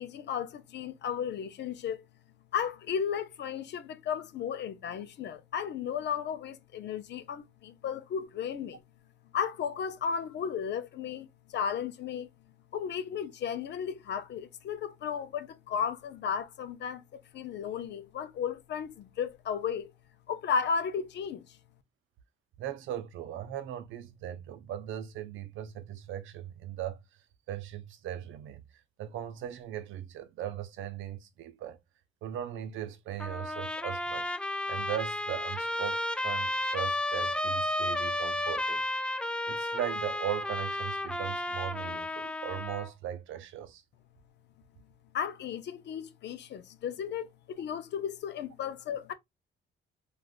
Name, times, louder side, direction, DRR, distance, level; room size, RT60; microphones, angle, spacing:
voice 1, 0.0-2.0 2.5-8.8 9.3-12.3 12.7-17.0 17.3-19.9 20.3-21.6 45.1-49.1, left 7 dB, 60° left, 0.5 m, -34 dB
voice 2, 22.6-27.0 27.5-28.6 29.0-31.8 32.2-34.3 34.7-39.1 39.5-43.8, right 11 dB, 75° right, 0.5 m, -38 dB
Trumpet, 33.2-42.9, left 1 dB, 5° left, 0.3 m, -32 dB
3.5 x 2.4 x 2.4 m
cardioid pair, 90°, 20 cm